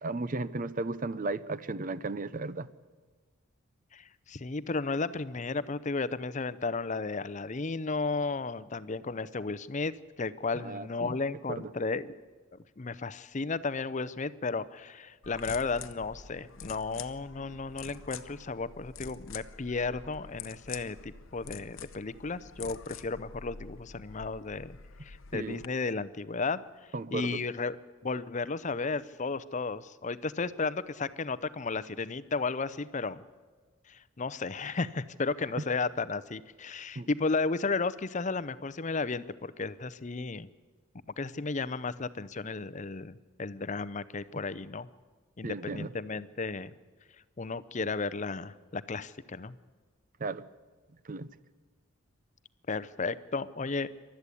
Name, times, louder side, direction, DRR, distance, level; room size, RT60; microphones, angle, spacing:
voice 1, 0.0-2.7 10.5-11.2 11.6-11.7 25.3-25.6 26.9-27.4 35.6-35.7 37.0-37.1 45.4-45.9 50.2-50.5 51.0-51.3, right 3 dB, 40° right, 15 dB, 0.6 m, -35 dB
voice 2, 3.9-12.2 12.5-26.6 27.1-27.8 28.0-33.2 33.9-40.5 41.2-44.9 45.4-46.7 47.4-49.6 52.7-53.9, left 4 dB, 35° left, 15 dB, 0.6 m, -34 dB
sound 1, 15.2-25.7, left 6 dB, 65° left, 0.8 m, -46 dB
28.0 x 12.5 x 8.5 m, 1.4 s
head